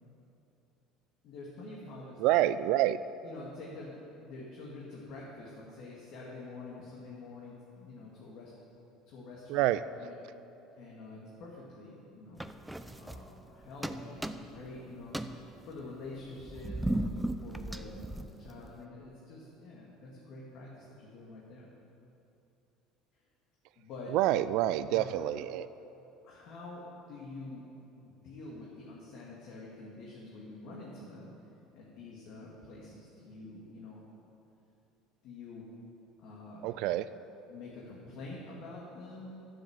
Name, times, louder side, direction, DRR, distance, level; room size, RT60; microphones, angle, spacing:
voice 1, 1.2-2.4 3.2-8.5 9.1-9.7 10.0-10.1 10.8-12.4 13.0-21.7 23.1-23.2 23.8-24.1 24.9-25.1 26.2-27.6 28.0-31.3 31.7-34.0 35.2-35.7 36.2-36.8 37.5-39.4, left 2 dB, 65° left, -5 dB, 2.3 m, -47 dB
voice 2, 2.2-3.0 9.5-9.8 24.1-25.7 36.6-37.1, right 14 dB, 70° right, 14 dB, 0.4 m, -27 dB
sound 1, 12.4-13.5 13.8-14.7 15.0-18.8, right 1 dB, 5° right, 0.5 m, -37 dB
12.5 x 7.6 x 7.4 m, 2.9 s
cardioid pair, 120°, 0 cm